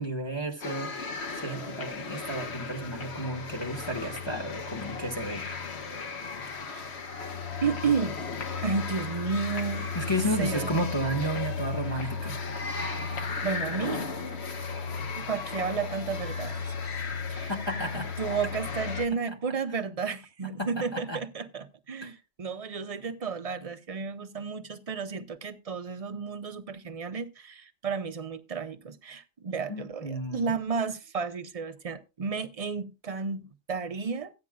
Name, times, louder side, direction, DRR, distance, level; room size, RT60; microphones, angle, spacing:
voice 1, 0.0-5.6 9.9-12.4 17.5-18.1 20.6-21.2 22.0-22.1 29.7-30.5, right 1 dB, 25° left, 1.2 m, -32 dB
sound 1, 0.6-19.1, left 4 dB, 70° left, 1.5 m, -35 dB
voice 2, 7.6-8.2 8.6-9.9 10.4-10.7 12.0-12.1 12.6-13.0 13.4-14.1 15.1-16.8 17.3-17.5 17.9-34.3, right 5 dB, 35° right, 0.7 m, -32 dB
14.5 x 9.7 x 2.3 m
omnidirectional pair, 1.2 m